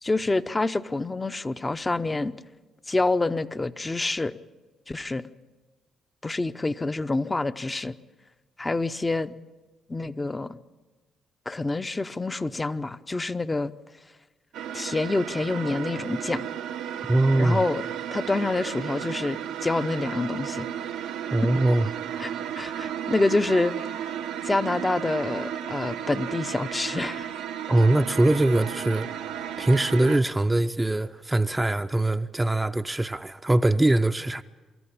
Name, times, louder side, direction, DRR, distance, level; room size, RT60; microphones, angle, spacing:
voice 1, 0.0-2.3 2.9-4.4 4.9-5.2 6.2-7.9 8.6-9.3 9.9-10.6 11.5-13.7 14.7-16.4 17.4-17.8 18.1-20.7 22.2-22.3 22.6-24.1 24.4-27.3, left 2 dB, 25° left, 0.8 m, -27 dB
sound 1, 14.5-30.2, right 9 dB, 75° right, 0.7 m, -34 dB
voice 2, 17.1-17.6 21.3-21.9 27.7-29.1 29.6-34.4, right 1 dB, 15° right, 0.6 m, -22 dB
25.0 x 14.0 x 8.8 m
hypercardioid pair, 55°, 0 cm